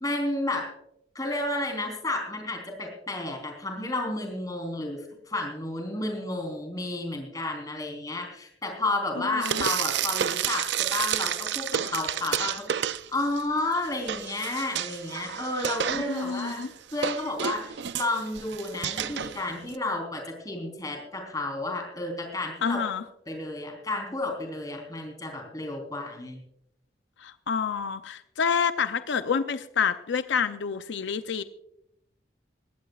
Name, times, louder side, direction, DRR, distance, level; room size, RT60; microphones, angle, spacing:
voice 1, 0.0-0.7 1.1-16.6 16.9-22.8 23.3-26.4, left 2 dB, 20° left, 3 dB, 3.7 m, -31 dB
voice 2, 9.3-9.6 16.1-16.7 22.6-23.0 27.2-31.4, left 6 dB, 90° left, 11 dB, 0.6 m, -28 dB
Frying (food), 9.4-13.4 13.7-19.8, right 9 dB, 75° right, 0.5 m, -31 dB
20.5 x 16.0 x 2.4 m, 0.78 s
head